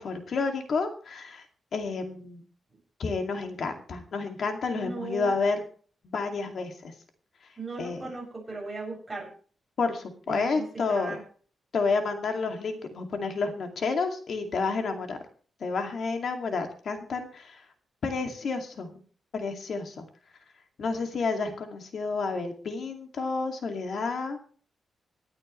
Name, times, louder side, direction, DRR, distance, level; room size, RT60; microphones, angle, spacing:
voice 1, 0.0-1.4 1.7-2.4 3.0-5.6 6.0-6.9 7.8-8.0 9.8-11.2 11.7-15.2 15.6-17.6 18.0-18.9 19.3-20.1 20.8-24.4, left 4 dB, 60° left, 5 dB, 2.3 m, -30 dB
voice 2, 4.7-5.3 7.6-9.3 10.3-11.2, right 3 dB, 15° right, -1 dB, 6.8 m, -37 dB
26.0 x 8.8 x 3.2 m, 0.43 s
wide cardioid pair, 120°, 0 cm